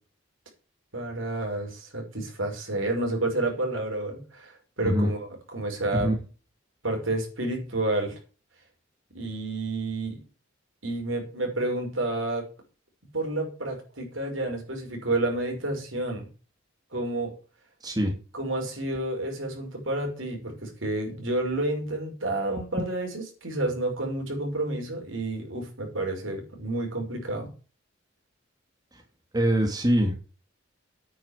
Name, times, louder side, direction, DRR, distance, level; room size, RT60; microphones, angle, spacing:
voice 1, 0.9-6.1 6.8-8.2 9.1-10.2 10.8-12.5 13.1-16.3 16.9-17.3 18.3-27.5, right 2 dB, 80° right, 1 dB, 5.5 m, -30 dB
voice 2, 29.3-30.2, equal, 20° right, 2 dB, 2.3 m, -23 dB
9.4 x 7.0 x 8.3 m, 0.36 s
head